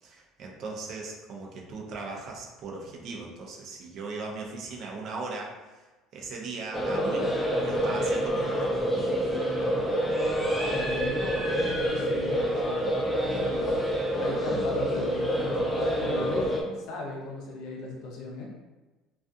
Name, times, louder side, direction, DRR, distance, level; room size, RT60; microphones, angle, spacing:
voice 1, 0.0-5.8 6.1-8.7, right 3 dB, 50° right, -1 dB, 0.5 m, -38 dB
sound 1, 6.7-16.6, equal, 5° left, 0.3 m, -27 dB
voice 2, 10.8-13.8 14.2-18.5, left 2 dB, 65° left, -1 dB, 0.6 m, -37 dB
2.4 x 2.3 x 2.6 m, 1.2 s
cardioid pair, 135°, 0 cm